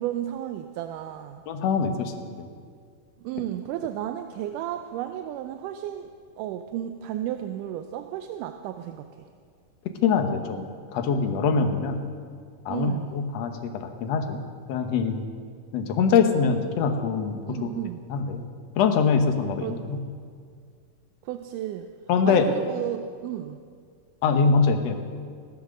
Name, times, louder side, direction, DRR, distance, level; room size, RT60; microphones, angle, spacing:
voice 1, 0.0-1.4 3.2-6.1 6.4-9.3 12.7-13.1 17.5-18.0 19.6-19.8 21.2-21.9 22.3-23.6, right 12 dB, 80° right, 7 dB, 2.1 m, -33 dB
voice 2, 1.5-2.1 10.0-12.0 12.7-14.4 14.7-15.2 15.7-17.7 18.1-18.4 18.8-20.0 22.1-22.4 24.2-25.0, left 5 dB, 65° left, 5 dB, 2.0 m, -23 dB
16.0 x 12.0 x 6.5 m, 2.1 s
omnidirectional pair, 3.8 m